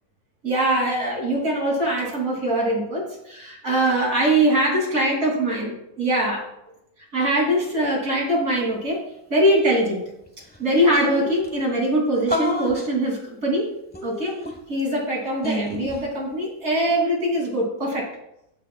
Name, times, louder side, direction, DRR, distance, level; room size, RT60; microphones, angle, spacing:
voice 1, 0.4-6.4 7.1-9.0 9.3-10.0 10.6-13.7 14.0-14.3 14.7-18.1, right 1 dB, 65° right, -3 dB, 3.5 m, -22 dB
sound 1, 10.3-10.4 10.5-10.6 10.9-11.5 12.3-12.9 13.9-14.8 15.4-16.0, left 1 dB, 5° left, 1.0 m, -28 dB
19.5 x 6.9 x 2.3 m, 0.83 s
omnidirectional pair, 1.6 m